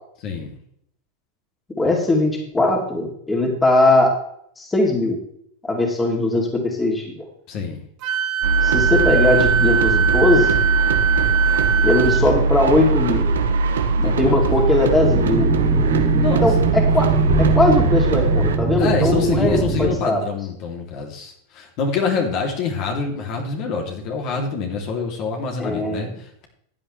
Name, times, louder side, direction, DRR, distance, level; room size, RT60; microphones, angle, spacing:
voice 1, 0.2-0.5 7.5-7.8 14.0-14.4 16.2-16.5 18.8-26.5, left 5 dB, 50° left, 1 dB, 3.0 m, -26 dB
voice 2, 1.8-4.1 4.6-5.2 5.6-7.1 8.6-10.6 11.8-13.3 14.0-15.5 16.3-17.1 17.4-20.2 25.6-26.1, left 2 dB, 15° left, 0 dB, 2.9 m, -19 dB
Wind instrument woodwind instrument, 8.0-12.2, right 7 dB, 50° right, 1.7 m, -21 dB
sound 1, 8.4-18.6, right 3 dB, 90° right, 1.4 m, -20 dB
sound 2, 15.0-20.0, right 4 dB, 35° right, 2.8 m, -22 dB
14.5 x 8.9 x 3.3 m, 0.68 s
hypercardioid pair, 115°, 0 cm